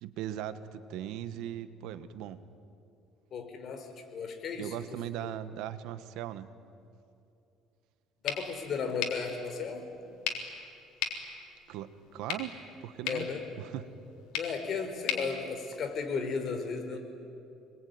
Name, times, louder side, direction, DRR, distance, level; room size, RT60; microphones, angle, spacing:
voice 1, 0.0-2.4 4.6-6.5 11.7-13.3 13.6-13.9, right 11 dB, 80° right, 12 dB, 1.4 m, -39 dB
voice 2, 3.3-4.8 5.1-5.3 8.2-9.8 13.0-13.5 14.3-17.0, left 5 dB, 45° left, 5 dB, 4.3 m, -35 dB
sound 1, 8.2-16.3, left 8 dB, 80° left, 3.6 m, -39 dB
28.0 x 22.0 x 9.5 m, 2.6 s
cardioid pair, 125°, 0 cm